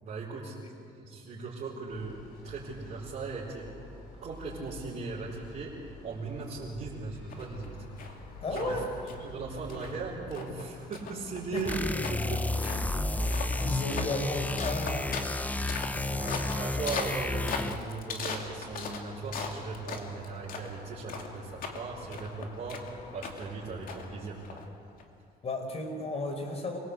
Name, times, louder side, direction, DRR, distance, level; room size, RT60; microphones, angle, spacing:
voice 1, 0.0-0.6 0.9-2.2 2.4-3.7 4.2-5.8 6.0-7.8 8.0-8.9 9.2-12.4 16.0-24.6, right 4 dB, 50° right, -6 dB, 4.7 m, -38 dB
sound 1, 1.9-10.1, left 1 dB, 85° left, 6.8 m, -49 dB
sound 2, 7.3-25.0, left 4 dB, 60° left, 2.6 m, -41 dB
voice 2, 8.4-8.8 11.5-11.6 13.6-15.1 15.9-16.4 25.4-26.8, left 2 dB, 40° left, 4 dB, 4.4 m, -34 dB
sound 3, 11.7-17.9, left 2 dB, 10° left, 0.7 m, -31 dB
26.5 x 17.5 x 8.2 m, 2.5 s
cardioid pair, 110°, 16 cm